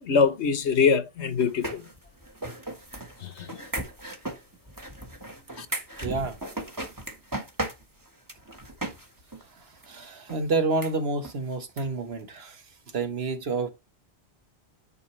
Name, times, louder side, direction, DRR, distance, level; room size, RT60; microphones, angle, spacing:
voice 1, 0.0-1.8 3.2-3.6 5.6-5.7, left 5 dB, 80° left, 1.3 m, -24 dB
sound 1, 1.4-9.1 9.3-9.4 9.8-9.9 10.3-10.4 10.8-10.9 11.2-11.3 11.8-11.9 12.1-12.2, right 1 dB, 20° right, 1.4 m, -36 dB
voice 2, 6.0-6.4 9.9-12.6 12.9-13.7, right 3 dB, 65° right, 1.5 m, -28 dB
10.0 x 4.7 x 3.2 m
omnidirectional pair, 1.1 m